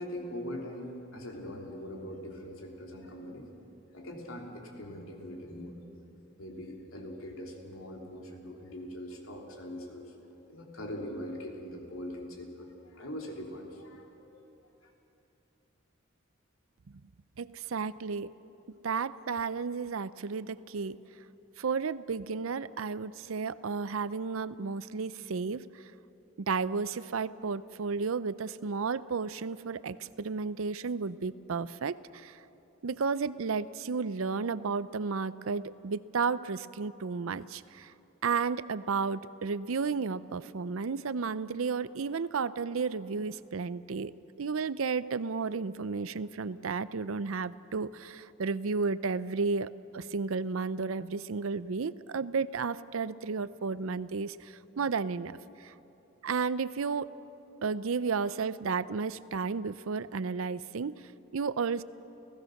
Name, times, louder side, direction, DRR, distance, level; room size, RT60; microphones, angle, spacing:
voice 1, 0.0-3.5 3.9-6.1 6.4-10.1 10.5-14.3 14.8-14.9, equal, 85° left, 0 dB, 3.4 m, -42 dB
voice 2, 17.4-18.3 18.8-21.0 21.6-25.8 26.4-32.4 32.8-37.9 38.2-44.1 44.4-55.7 56.2-57.1 57.6-61.8, right 5 dB, 85° right, 17 dB, 0.6 m, -33 dB
30.0 x 16.5 x 6.6 m, 3.0 s
head